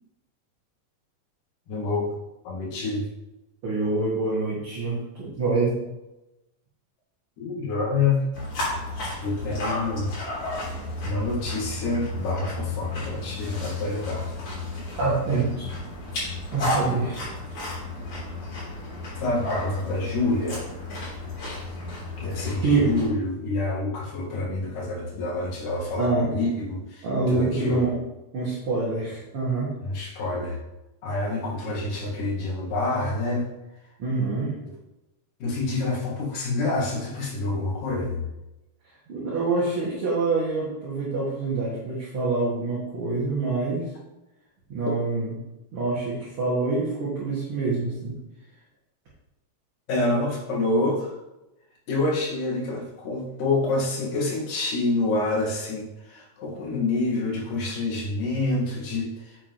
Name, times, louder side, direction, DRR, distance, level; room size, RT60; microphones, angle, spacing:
voice 1, 1.7-2.1 2.4-3.1 7.4-8.3 9.2-10.1 11.0-14.3 19.1-20.6 22.2-27.8 29.8-30.6 31.0-33.5 35.4-38.3 49.9-51.2 51.9-59.4, left 2 dB, 70° left, -3 dB, 3.2 m, -27 dB
voice 2, 3.6-5.7 15.0-15.7 16.5-17.3 22.6-22.9 26.0-26.3 27.0-27.9 28.3-29.7 34.0-34.6 39.1-43.9 44.7-45.3 45.7-48.2, right 3 dB, 45° right, -8 dB, 2.4 m, -26 dB
sound 1, 8.3-23.1, left 2 dB, 55° left, 4.5 m, -33 dB
8.5 x 7.0 x 3.0 m, 0.97 s
omnidirectional pair, 3.9 m